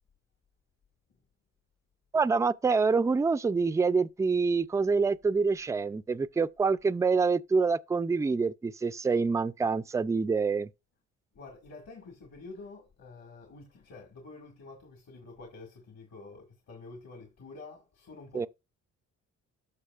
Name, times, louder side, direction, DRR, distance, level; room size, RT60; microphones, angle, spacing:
voice 1, 2.1-10.7 18.3-18.5, right 4 dB, 10° right, 0.3 m, -26 dB
voice 2, 11.3-18.5, left 3 dB, 60° left, 2.0 m, -48 dB
13.5 x 5.4 x 2.4 m
cardioid pair, 90°, 30 cm